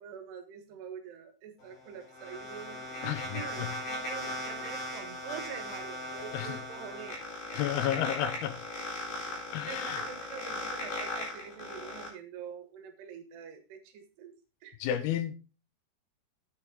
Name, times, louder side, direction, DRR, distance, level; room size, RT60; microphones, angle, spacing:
voice 1, 0.0-7.2 7.5-7.9 9.1-9.4 9.7-14.4 14.6-14.8, right 8 dB, 75° right, 3.5 m, -45 dB
sound 1, 1.6-12.1, left 1 dB, 50° left, 5.8 m, -38 dB
voice 2, 7.5-8.6 9.5-10.0 14.8-15.3, left 11 dB, 75° left, 2.6 m, -31 dB
9.5 x 8.8 x 3.7 m
omnidirectional pair, 4.8 m